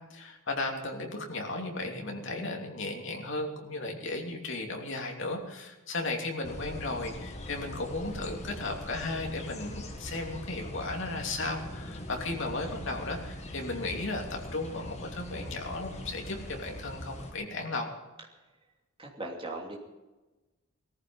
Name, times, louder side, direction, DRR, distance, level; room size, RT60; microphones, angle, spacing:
voice 1, 0.1-17.9, left 2 dB, 55° left, 2 dB, 2.9 m, -35 dB
sound 1, 6.4-17.3, left 1 dB, 30° left, 1.7 m, -41 dB
voice 2, 19.0-19.8, right 2 dB, 25° right, -1 dB, 2.9 m, -38 dB
18.5 x 14.5 x 5.5 m, 1.1 s
head